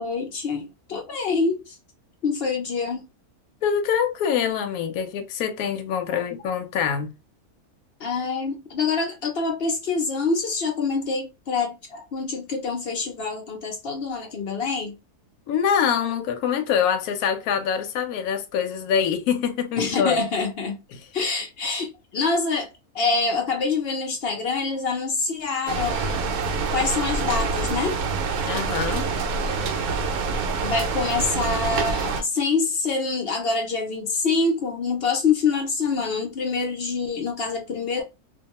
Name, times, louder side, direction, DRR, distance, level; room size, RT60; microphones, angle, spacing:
voice 1, 0.0-1.8 2.2-3.1 8.0-15.0 19.8-20.8 21.1-22.7 22.9-26.3 26.7-28.0 30.6-38.0, left 4 dB, 60° left, 0.7 m, -26 dB
voice 2, 3.6-7.1 15.5-20.2 20.9-21.0 28.5-29.1, left 7 dB, 75° left, 1.1 m, -24 dB
sound 1, 25.7-32.2, right 4 dB, 75° right, 1.0 m, -26 dB
2.6 x 2.2 x 2.9 m
omnidirectional pair, 1.6 m